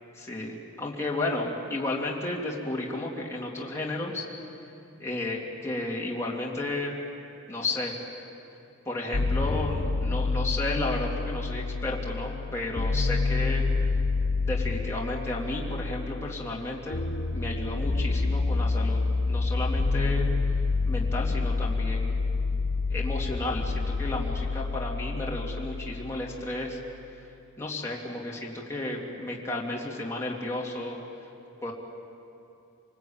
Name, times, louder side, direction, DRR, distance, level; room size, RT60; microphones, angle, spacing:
voice 1, 0.2-4.3 5.0-6.9 7.5-7.9 8.8-13.7 14.4-17.0 17.3-20.3 20.8-22.3 22.9-26.8 27.6-31.0 31.6-31.7, left 2 dB, 15° left, -3 dB, 2.8 m, -33 dB
sound 1, 9.1-27.1, left 3 dB, 50° left, 0.7 m, -28 dB
27.0 x 19.5 x 8.8 m, 2.7 s
head